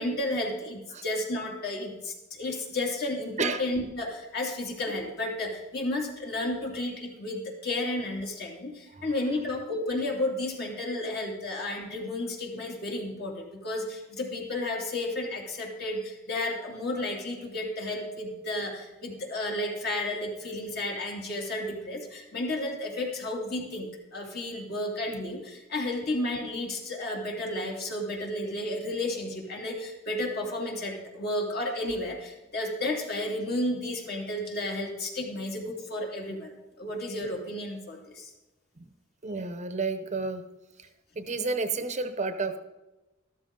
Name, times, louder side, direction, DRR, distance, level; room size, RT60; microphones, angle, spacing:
voice 1, 0.0-36.5 36.8-38.3, left 1 dB, 55° left, 0 dB, 2.9 m, -32 dB
voice 2, 39.2-40.4 41.2-42.6, right 4 dB, 35° right, 9 dB, 0.8 m, -30 dB
13.5 x 13.0 x 3.8 m, 1.0 s
head